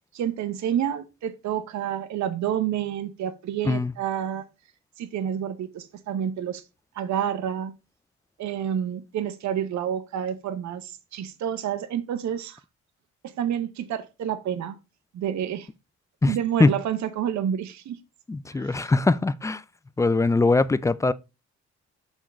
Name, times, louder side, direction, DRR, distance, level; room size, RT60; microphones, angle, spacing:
voice 1, 0.1-4.4 5.0-6.6 6.9-7.7 8.4-12.6 13.2-14.8 15.1-15.7 16.2-18.0 18.5-18.9, right 9 dB, 65° right, 0.8 m, -29 dB
voice 2, 16.2-16.8 18.3-19.6 20.0-21.1, left 3 dB, 10° left, 0.3 m, -22 dB
7.2 x 3.8 x 4.2 m
cardioid pair, 90°, 30 cm